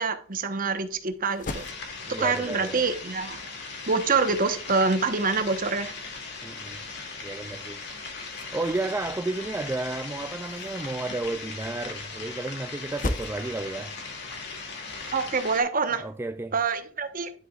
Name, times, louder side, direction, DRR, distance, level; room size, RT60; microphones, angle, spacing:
voice 1, 0.0-1.7 2.2-3.4 3.9-5.9 15.1-16.1 16.5-17.3, right 4 dB, 45° right, 1.2 m, -26 dB
sound 1, 0.6-15.4, left 2 dB, 40° left, 0.9 m, -42 dB
sound 2, 1.4-15.6, left 4 dB, 60° left, 2.5 m, -38 dB
voice 2, 2.0-2.8 6.4-6.8 7.2-7.8 8.5-14.0 16.0-16.6, right 2 dB, 10° right, 0.3 m, -32 dB
10.5 x 7.6 x 2.4 m
head